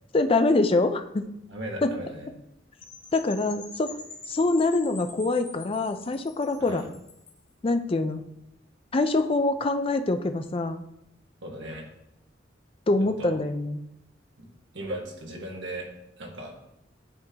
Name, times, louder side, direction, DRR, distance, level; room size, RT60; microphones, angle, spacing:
voice 1, 0.1-1.3 1.8-1.9 3.1-3.9 4.3-6.8 7.6-8.2 8.9-10.8 12.9-13.8, left 2 dB, 30° left, 8 dB, 0.4 m, -24 dB
voice 2, 1.5-2.3 6.6-6.9 11.4-11.9 13.0-13.4 14.7-15.9 16.2-16.5, right 1 dB, 70° right, 0 dB, 1.4 m, -37 dB
Percussion / Wind chime, 2.8-7.5, left 4 dB, 45° left, 1.4 m, -45 dB
10.5 x 3.8 x 2.8 m, 0.82 s
head